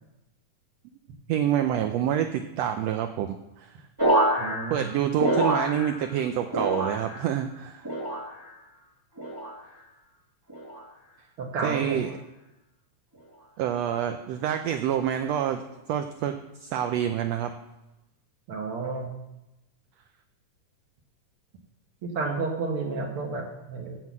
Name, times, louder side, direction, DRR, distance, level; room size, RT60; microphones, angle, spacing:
voice 1, 1.3-3.7 4.7-7.8 11.6-12.1 13.6-15.6 15.9-17.5, right 10 dB, 90° right, 7 dB, 1.4 m, -27 dB
sound 1, 4.0-6.2 6.5-7.3 7.8-8.5 9.2-9.6 10.5-10.9 11.8-12.1, right 1 dB, 15° right, 0.9 m, -27 dB
voice 2, 4.4-4.9 11.4-12.0 18.5-19.1 22.0-24.0, right 4 dB, 60° right, 2 dB, 1.6 m, -31 dB
7.9 x 7.5 x 7.2 m, 0.94 s
omnidirectional pair, 3.6 m